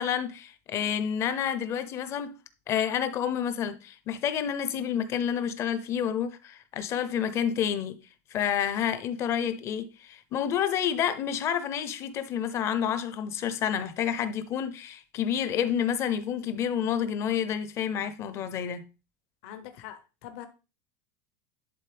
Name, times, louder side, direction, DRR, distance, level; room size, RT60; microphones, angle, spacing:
voice 1, 0.0-2.4 2.7-8.0 8.3-18.8, left 9 dB, 30° left, 0.7 m, -29 dB
voice 2, 19.4-20.5, left 11 dB, 50° left, 1.0 m, -43 dB
11.0 x 4.0 x 3.4 m
supercardioid pair, 170°, 9 cm